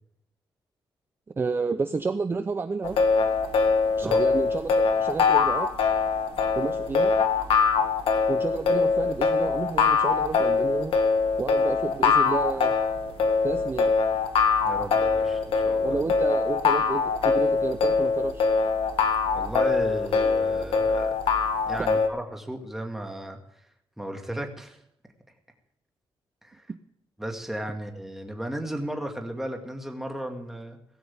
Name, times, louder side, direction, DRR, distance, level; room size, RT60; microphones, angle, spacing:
voice 1, 1.4-3.0 4.0-5.7 6.5-7.1 8.3-11.0 11.4-12.7 13.4-13.9 15.8-18.5 21.8-21.9, right 4 dB, 25° right, 10 dB, 0.6 m, -30 dB
sound 1, 2.8-22.1, left 5 dB, 80° left, 2.0 m, -23 dB
voice 2, 14.6-15.9 19.3-21.1 21.7-23.4 24.0-24.8 26.4-26.6 27.2-30.8, right 1 dB, 5° right, 3 dB, 2.1 m, -34 dB
17.5 x 15.5 x 3.6 m, 0.76 s
wide cardioid pair, 165°, 9 cm